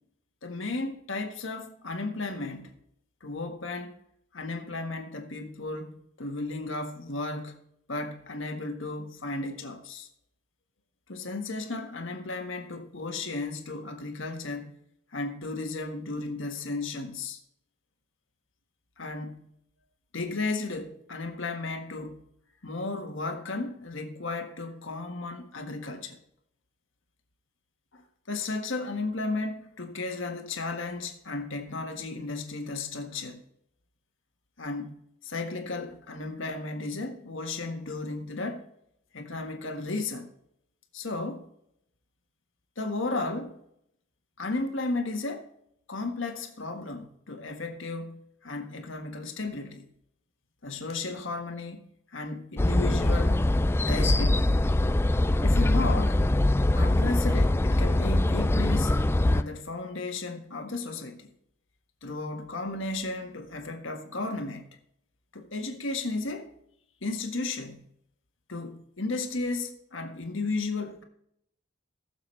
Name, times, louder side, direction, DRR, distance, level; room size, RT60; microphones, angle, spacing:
voice 1, 0.4-2.7 3.2-4.0 4.3-7.6 7.9-10.1 11.1-14.7 15.1-17.4 19.0-19.5 20.1-22.2 22.6-26.2 27.9-33.4 34.6-35.0 35.2-38.7 39.1-40.3 40.9-41.5 42.8-43.6 44.4-45.5 45.9-49.8 50.6-53.4 53.8-54.5 55.4-56.2 56.7-59.0 59.3-61.3 62.0-64.6 65.3-66.5 67.0-67.8 68.5-71.0, left 3 dB, 65° left, 1.6 m, -34 dB
sound 1, 52.6-59.4, left 1 dB, 10° left, 0.3 m, -23 dB
19.5 x 7.1 x 3.3 m
head